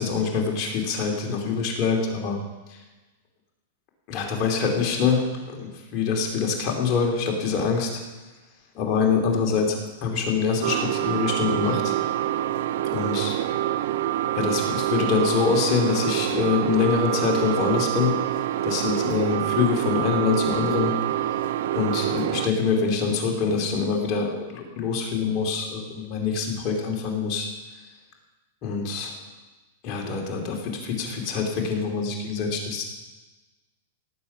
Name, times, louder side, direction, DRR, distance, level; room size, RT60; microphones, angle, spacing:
voice 1, 0.0-2.4 4.1-7.9 8.7-12.0 12.9-13.3 14.3-18.1 18.6-20.9 21.7-27.5 28.6-29.2 29.8-32.8, left 5 dB, 40° left, 1 dB, 2.8 m, -25 dB
sound 1, 10.6-22.5, right 13 dB, 65° right, 0.5 m, -26 dB
18.0 x 7.5 x 5.6 m, 1.2 s
hypercardioid pair, 140°, 0 cm